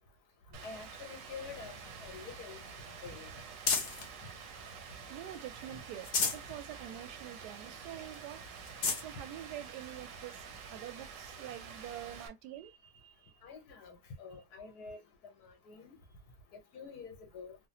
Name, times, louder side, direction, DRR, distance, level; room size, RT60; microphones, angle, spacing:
Rain, 0.5-12.3, right 6 dB, 65° right, 0.9 m, -48 dB
voice 1, 0.6-1.7 2.0-2.6 2.9-3.3 4.2-4.3 5.7-5.8 13.4-16.0 16.5-17.6, left 5 dB, 75° left, 1.4 m, -48 dB
sound 1, 1.5-4.1 4.7-5.4 5.8-6.5 7.0-7.1 7.4-7.5 8.1-8.2 8.6-9.1 9.9-10.0 11.8-11.9, left 4 dB, 55° left, 0.6 m, -36 dB
voice 2, 5.1-8.4 8.9-10.4 10.7-13.4, right 12 dB, 85° right, 1.1 m, -46 dB
3.2 x 2.1 x 2.7 m
omnidirectional pair, 1.7 m